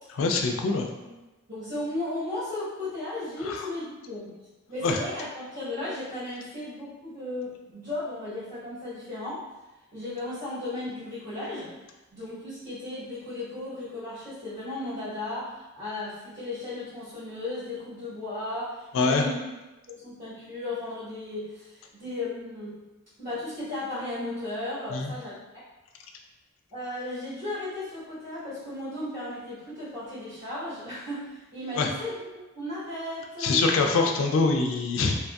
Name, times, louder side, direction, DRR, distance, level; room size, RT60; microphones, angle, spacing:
voice 1, 0.2-0.9 3.4-3.7 4.8-5.0 18.9-19.2 24.9-25.1 31.8-31.9 33.4-35.2, left 3 dB, 70° left, 2 dB, 0.3 m, -24 dB
voice 2, 1.5-4.3 4.7-9.4 9.9-11.7 12.1-19.4 19.9-22.9 23.2-25.6 26.7-33.7, left 1 dB, 40° right, -13 dB, 1.3 m, -35 dB
2.8 x 2.6 x 2.3 m, 1.1 s
head